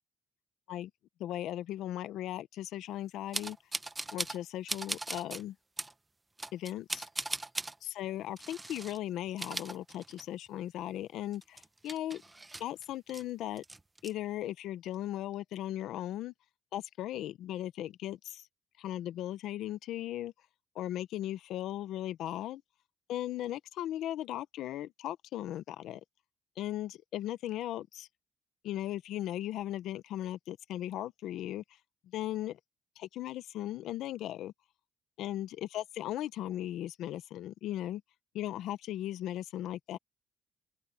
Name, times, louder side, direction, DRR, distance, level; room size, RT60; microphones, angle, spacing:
voice 1, 1.2-3.6 4.1-5.6 6.5-7.1 7.8-12.2 12.6-13.6 14.0-16.3 16.7-18.5 18.8-20.3 20.7-22.6 23.1-26.0 26.6-28.1 28.6-31.6 32.0-32.6 33.0-34.5 35.2-38.0 38.3-40.0, left 13 dB, 85° left, 0.9 m, -37 dB
sound 1, 3.3-4.4 4.7-5.4 5.8-5.9 6.4-7.7 8.4-9.0 9.3-10.5 10.8-10.9 11.3-13.2 13.6-14.1, right 2 dB, 20° right, 1.3 m, -39 dB
open air
cardioid pair, 90°, 0 cm